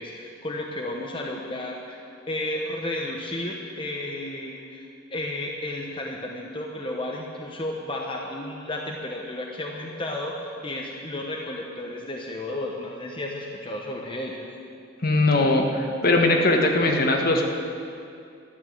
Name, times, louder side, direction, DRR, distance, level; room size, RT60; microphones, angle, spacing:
voice 1, 0.0-2.0 2.3-14.5, left 1 dB, 25° left, -1 dB, 1.0 m, -33 dB
voice 2, 15.0-17.5, left 2 dB, 50° left, 2 dB, 1.3 m, -20 dB
12.5 x 10.5 x 7.7 m, 2.4 s
head